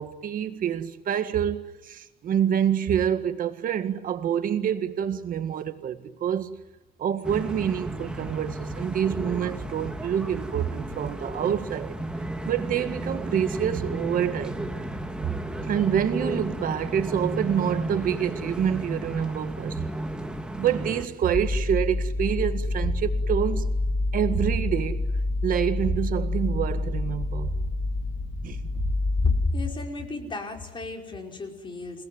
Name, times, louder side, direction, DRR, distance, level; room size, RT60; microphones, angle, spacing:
voice 1, 0.0-6.5 7.0-11.9 12.4-14.8 15.6-19.8 20.6-23.6 24.1-25.0 25.4-27.6 28.4-28.9, right 9 dB, 55° right, 1.8 m, -27 dB
sound 1, 7.2-21.0, right 1 dB, 5° right, 2.8 m, -33 dB
sound 2, 21.3-29.5, left 2 dB, 50° left, 2.9 m, -27 dB
voice 2, 29.2-32.1, left 4 dB, 30° left, 5.3 m, -31 dB
29.5 x 19.0 x 9.4 m
cardioid pair, 110°, 17 cm